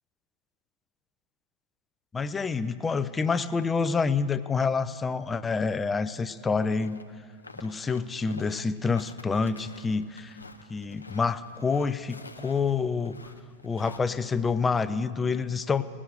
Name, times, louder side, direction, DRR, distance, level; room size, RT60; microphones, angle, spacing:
voice 1, 2.1-7.0 7.6-10.4 10.7-13.2 13.6-15.8, left 5 dB, 15° left, 14 dB, 0.4 m, -27 dB
sound 1, 6.6-7.0 7.3-14.0, left 3 dB, 80° left, 0.6 m, -48 dB
18.5 x 6.2 x 6.6 m, 2.1 s
figure-of-eight pair, 90°, 0 cm